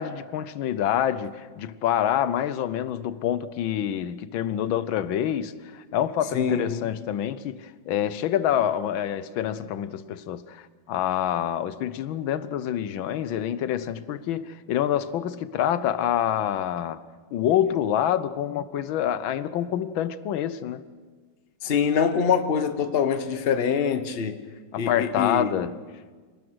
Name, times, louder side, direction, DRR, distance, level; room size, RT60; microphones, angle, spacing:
voice 1, 0.0-17.0 17.3-20.9 24.7-25.8, left 10 dB, 90° left, 1.6 m, -27 dB
voice 2, 6.3-6.9 21.6-24.4 24.8-25.5, left 6 dB, 35° left, 1.1 m, -24 dB
26.5 x 19.0 x 6.2 m
omnidirectional pair, 2.1 m